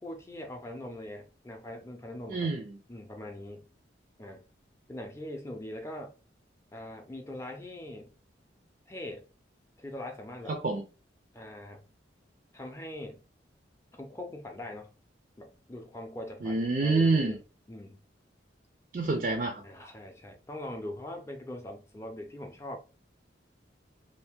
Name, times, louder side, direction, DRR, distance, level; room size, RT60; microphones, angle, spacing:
voice 1, 0.0-2.5 2.9-3.7 4.2-4.5 4.9-6.1 6.7-8.1 8.9-9.2 9.8-10.6 11.3-11.8 12.5-13.2 13.9-14.9 15.4-17.4 17.7-18.0 19.6-22.8, left 1 dB, 15° left, 0.6 m, -42 dB
voice 2, 2.3-2.8 10.5-10.8 16.4-17.4 18.9-19.6, right 3 dB, 45° right, 0.4 m, -27 dB
2.7 x 2.5 x 3.5 m
head